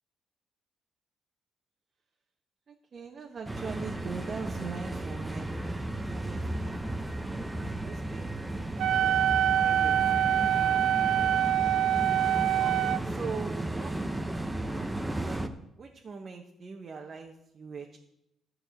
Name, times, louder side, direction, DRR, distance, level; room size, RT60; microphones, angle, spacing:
voice 1, 2.7-5.5 6.1-6.8 7.8-8.3 8.8-10.4 11.2-11.3 12.6-13.9 15.2-15.4 15.8-18.0, right 5 dB, 45° right, 1 dB, 1.1 m, -41 dB
sound 1, 3.5-15.5, right 1 dB, 10° right, 0.9 m, -34 dB
Wind instrument woodwind instrument, 8.8-13.0, right 11 dB, 80° right, 0.3 m, -25 dB
11.5 x 4.8 x 8.2 m, 0.82 s
cardioid pair, 90°, 0 cm